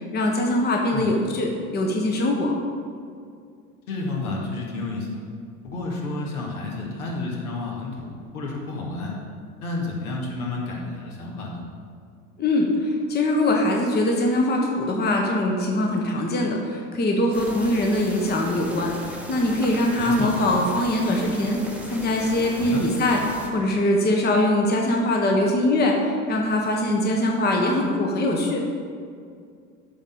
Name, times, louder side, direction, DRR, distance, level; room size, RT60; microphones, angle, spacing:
voice 1, 0.1-2.5 12.4-18.9 19.3-21.6 21.9-28.6, left 1 dB, 20° left, 1 dB, 1.2 m, -22 dB
voice 2, 3.9-5.2 5.6-9.1 9.6-11.6 20.0-20.3 22.6-22.8, left 3 dB, 70° left, -2 dB, 2.2 m, -30 dB
sound 1, 17.3-23.5, right 1 dB, 5° right, 1.2 m, -37 dB
12.5 x 4.3 x 5.4 m, 2.2 s
figure-of-eight pair, 80°, 46 cm